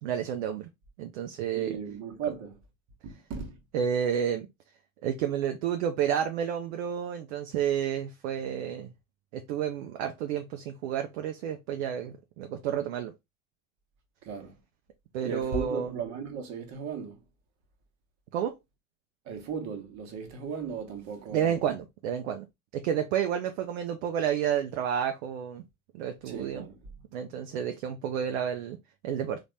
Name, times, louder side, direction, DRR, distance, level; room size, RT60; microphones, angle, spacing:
voice 1, 0.0-0.7 1.0-1.7 3.7-4.5 5.0-8.9 9.3-13.1 15.1-15.9 18.3-18.6 21.3-22.4 22.7-25.6 25.9-26.7 27.1-28.8 29.0-29.4, right 9 dB, 60° right, 0.6 m, -30 dB
voice 2, 1.6-2.5 3.0-3.6 14.2-14.6 15.2-17.2 19.3-21.6 26.2-26.9, right 6 dB, 40° right, 1.2 m, -36 dB
3.9 x 2.5 x 3.2 m
figure-of-eight pair, 70°, 40 cm